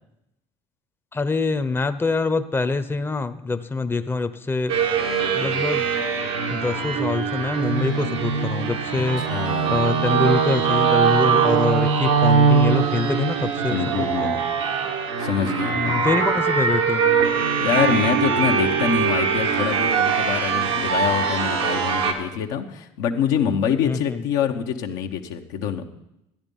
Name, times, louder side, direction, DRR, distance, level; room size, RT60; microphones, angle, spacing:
voice 1, 1.1-4.7 5.3-5.9 6.5-9.2 9.7-14.4 15.8-17.2 23.8-24.2, left 3 dB, 15° left, 10 dB, 0.7 m, -25 dB
sound 1, 4.7-22.1, right 6 dB, 85° right, 1.5 m, -22 dB
voice 2, 9.3-10.0 13.7-14.4 15.2-16.1 17.6-25.8, left 8 dB, 75° left, 4 dB, 1.0 m, -25 dB
13.0 x 9.7 x 5.4 m, 0.87 s
hypercardioid pair, 70°, 14 cm